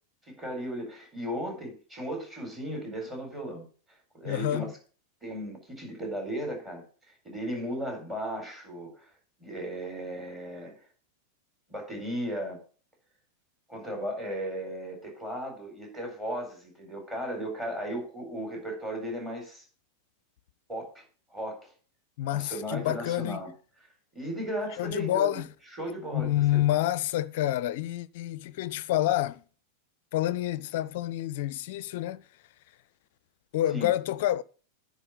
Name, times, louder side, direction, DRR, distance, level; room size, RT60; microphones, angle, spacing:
voice 1, 0.3-3.6 4.1-4.7 5.2-6.8 7.2-9.1 9.4-10.7 11.7-12.6 13.7-19.6 20.7-21.0 21.3-21.7 22.3-23.5 24.1-25.5 25.8-26.6 33.7-33.9, equal, 15° right, 4.2 m, -36 dB
voice 2, 4.2-4.7 22.2-23.4 24.8-25.5 26.1-29.4 30.1-32.2 33.5-34.4, left 13 dB, 50° left, 0.4 m, -28 dB
9.9 x 4.1 x 7.2 m
figure-of-eight pair, 90°, 0 cm